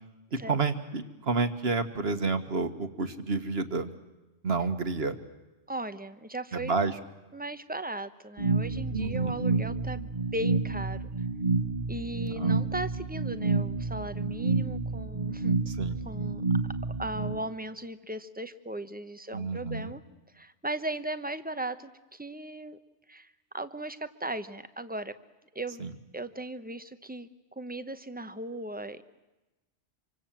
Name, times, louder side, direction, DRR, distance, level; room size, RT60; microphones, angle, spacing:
voice 1, 0.5-3.9 4.4-5.2 6.5-7.0 8.9-9.4 12.3-12.6 15.7-16.0 19.3-19.9 25.8-25.9, right 4 dB, 60° right, 9 dB, 1.8 m, -30 dB
voice 2, 5.7-6.8 7.3-11.1 11.9-15.7 16.0-16.4 17.0-20.0 20.3-22.8 23.1-25.1 25.5-25.9 26.1-27.3 27.6-29.0, right 1 dB, 10° right, 11 dB, 1.0 m, -37 dB
sound 1, 8.4-17.4, right 3 dB, 40° right, 1.6 m, -29 dB
26.5 x 25.0 x 7.6 m, 1.1 s
omnidirectional pair, 1.2 m